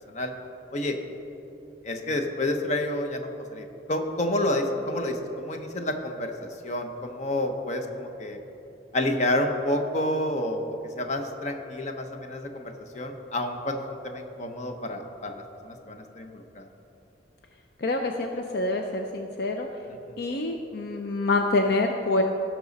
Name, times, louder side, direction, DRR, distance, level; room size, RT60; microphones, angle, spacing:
voice 1, 1.8-8.4 8.9-16.7, left 1 dB, 40° left, 5 dB, 0.9 m, -29 dB
voice 2, 17.8-19.7 20.2-22.2, left 2 dB, 60° left, 4 dB, 0.5 m, -26 dB
17.0 x 6.2 x 4.1 m, 2.9 s
head